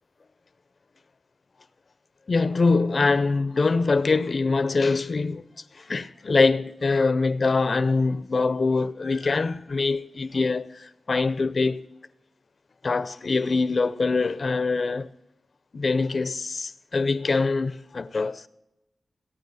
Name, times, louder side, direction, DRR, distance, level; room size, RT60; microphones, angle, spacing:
voice 1, 2.3-5.4 5.7-11.8 12.8-15.1 15.7-18.5, left 3 dB, 55° left, 0.6 m, -24 dB
19.0 x 8.9 x 4.1 m
cardioid pair, 75°, 0 cm